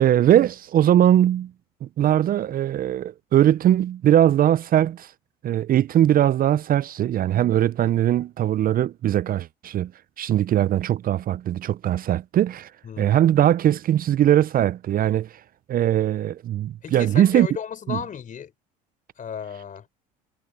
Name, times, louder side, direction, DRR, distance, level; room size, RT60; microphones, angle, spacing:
voice 1, 0.0-1.5 1.8-5.1 5.4-9.9 10.2-12.7 13.0-15.3 15.7-17.5 17.9-18.0, right 11 dB, 45° right, 0.8 m, -20 dB
voice 2, 12.8-13.2 16.8-18.5 19.2-19.9, left 7 dB, 40° left, 4.7 m, -34 dB
hypercardioid pair, 75°, 21 cm